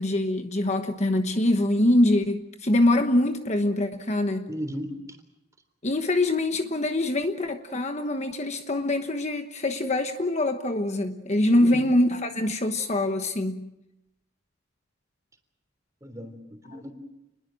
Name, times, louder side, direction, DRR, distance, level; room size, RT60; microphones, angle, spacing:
voice 1, 0.0-4.5 5.8-13.7 16.7-16.8, left 1 dB, 35° left, 1.2 m, -24 dB
voice 2, 4.5-5.0 11.6-11.8 16.0-16.9, equal, 15° right, 3.5 m, -35 dB
29.0 x 21.5 x 6.4 m
head